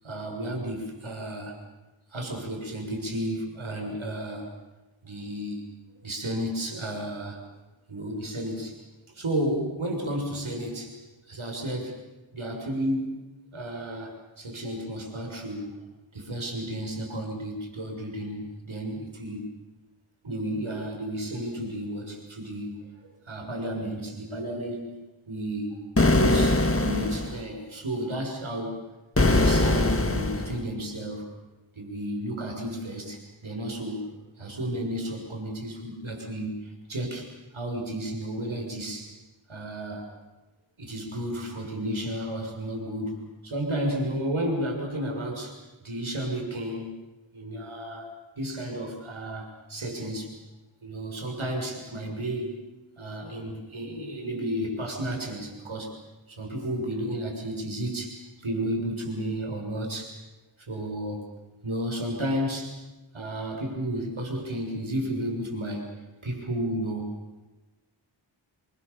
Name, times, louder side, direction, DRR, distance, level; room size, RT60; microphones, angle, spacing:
voice 1, 0.0-1.6 2.1-4.5 5.0-5.6 6.0-7.4 7.9-8.8 9.1-11.0 11.3-12.0 12.3-13.1 13.5-15.7 16.1-19.5 20.2-22.8 23.0-24.9 25.3-28.8 29.2-31.3 31.7-39.1 39.5-40.1 40.8-45.6 45.8-47.0 47.3-48.1 48.4-50.3 50.8-52.5 53.0-55.9 56.3-58.2 58.4-60.2 60.7-61.2 61.6-62.7 63.1-65.9 66.2-67.2, right 1 dB, 85° right, 2 dB, 6.7 m, -32 dB
sound 1, 26.0-27.4 29.2-30.6, left 2 dB, 30° left, 1.9 m, -22 dB
28.0 x 24.5 x 7.1 m, 1.1 s
wide cardioid pair, 55°, 47 cm